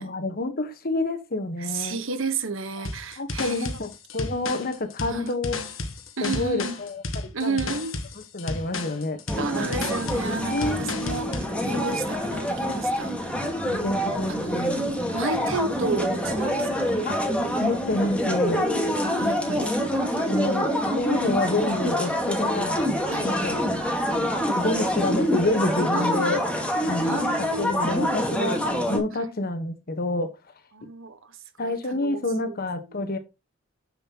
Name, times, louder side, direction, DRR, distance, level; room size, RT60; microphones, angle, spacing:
voice 1, 0.0-2.0 3.2-5.6 6.2-7.0 7.4-7.6 8.3-9.2 10.5-11.4 13.7-14.9 17.1-17.2 17.6-18.7 19.2-19.7 20.3-22.9 23.2-23.7 24.5-26.4 26.8-30.3 31.6-33.2, left 2 dB, 50° left, 1.4 m, -28 dB
voice 2, 1.6-3.7 5.1-5.3 6.2-6.8 7.3-7.9 9.4-13.6 13.9-14.0 14.3-14.6 15.1-17.1 19.0-20.7 22.0-22.2 23.1-23.4 25.9-26.4 27.0-27.9 29.1-29.3 30.7-31.4 31.6-32.5 32.9-33.0, right 4 dB, 70° right, 1.4 m, -33 dB
sound 1, 2.8-11.5, left 2 dB, 70° left, 1.4 m, -33 dB
sound 2, 9.3-29.0, equal, 5° left, 2.1 m, -26 dB
7.9 x 7.1 x 3.0 m
head